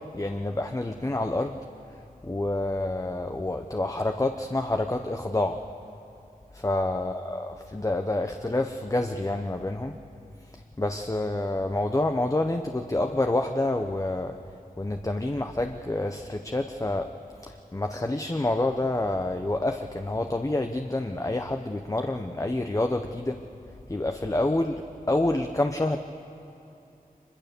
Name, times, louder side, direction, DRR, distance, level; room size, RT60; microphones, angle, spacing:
voice 1, 0.1-1.6 2.2-5.6 6.6-10.0 10.8-14.3 14.8-17.1 17.7-23.4 23.9-24.8 25.1-26.0, left 2 dB, 20° left, 5 dB, 0.8 m, -28 dB
24.0 x 21.5 x 6.8 m, 2.7 s
wide cardioid pair, 80°, 15 cm